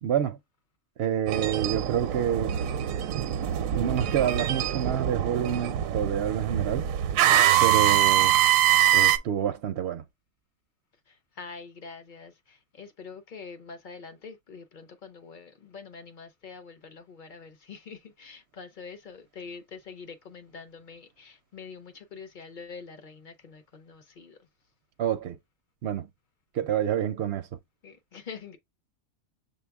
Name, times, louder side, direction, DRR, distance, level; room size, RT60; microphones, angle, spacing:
voice 1, 0.0-0.4 1.0-2.6 3.7-6.9 7.6-8.4 8.9-10.0 25.0-25.4 25.8-26.1 26.5-27.5, right 9 dB, 65° right, 0.7 m, -28 dB
sound 1, 1.3-9.2, right 11 dB, 90° right, 1.0 m, -24 dB
voice 2, 11.1-24.4 27.8-28.6, left 5 dB, 50° left, 0.7 m, -45 dB
6.7 x 2.3 x 3.4 m
omnidirectional pair, 1.4 m